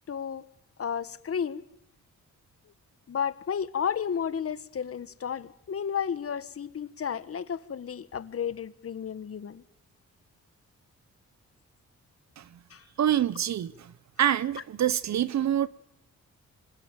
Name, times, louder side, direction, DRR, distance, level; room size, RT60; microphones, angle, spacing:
voice 1, 0.1-0.4 0.8-1.6 3.1-9.6 12.7-12.8, left 7 dB, 50° left, 1.4 m, -32 dB
voice 2, 13.0-13.9 14.2-15.7, right 10 dB, 70° right, 0.9 m, -26 dB
25.0 x 20.5 x 9.0 m
cardioid pair, 110°, 29 cm